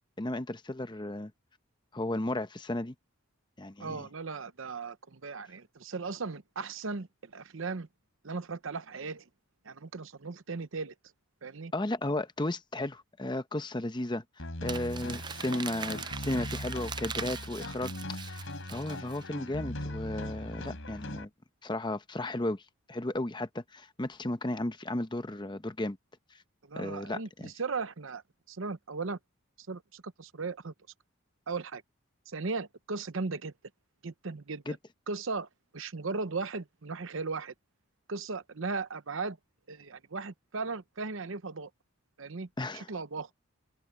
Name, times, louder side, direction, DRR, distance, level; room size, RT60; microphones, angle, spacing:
voice 1, 0.2-1.3 1.9-2.9 3.6-4.1 11.7-14.2 14.6-21.3 21.6-22.6 22.9-26.0 26.8-27.5 34.7-34.8 42.6-42.9, left 1 dB, 20° left, 0.8 m, -34 dB
voice 2, 3.8-7.9 8.2-9.3 9.6-10.9 11.4-11.7 26.6-28.2 28.5-29.2 29.6-30.7 31.5-31.8 32.3-33.5 34.0-34.6 35.1-35.5 35.7-37.5 38.1-39.4 39.7-41.7 42.2-42.5 42.7-43.3, right 4 dB, 65° right, 0.8 m, -37 dB
sound 1, 14.4-21.2, left 1 dB, 65° left, 4.3 m, -39 dB
Crumpling crinkling, 14.7-19.2, right 6 dB, 20° right, 0.3 m, -41 dB
open air
head